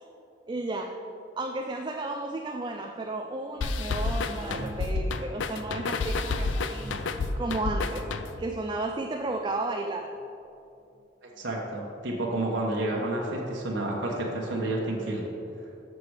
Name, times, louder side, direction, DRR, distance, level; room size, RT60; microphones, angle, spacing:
voice 1, 0.5-1.0 1.4-7.0 7.4-8.1 8.4-10.1, right 2 dB, 25° right, 4 dB, 0.3 m, -33 dB
sound 1, 3.5-5.2 5.5-5.6 6.1-6.2 6.6-7.2 8.0-8.1 8.3-8.4 8.7-9.0 9.8-9.9 10.2-10.3 10.9-11.0 11.3-11.4, right 1 dB, 15° left, 1.2 m, -43 dB
sound 2, 3.6-8.6, left 3 dB, 90° left, 0.4 m, -30 dB
voice 2, 11.4-15.3, right 1 dB, 85° right, -2 dB, 1.1 m, -30 dB
6.7 x 6.4 x 4.8 m, 2.8 s
head